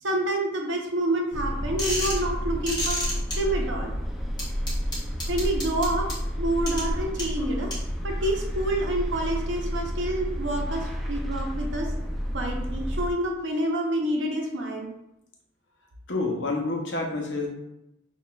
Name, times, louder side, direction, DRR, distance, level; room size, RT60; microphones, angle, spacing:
voice 1, 0.0-3.0 3.3-3.9 5.3-6.1 6.4-7.7 8.0-11.9 12.3-14.9, right 1 dB, 80° right, 1 dB, 0.8 m, -28 dB
sound 1, 1.3-13.1, equal, ahead, 0.4 m, -30 dB
sound 2, 1.8-2.2 2.7-3.3 4.4-6.1 6.7-6.8 7.2-7.3 7.7-7.8, left 1 dB, 25° left, 1.3 m, -29 dB
voice 2, 16.1-17.5, left 2 dB, 70° left, 0 dB, 0.8 m, -28 dB
6.0 x 2.4 x 2.3 m, 0.86 s
head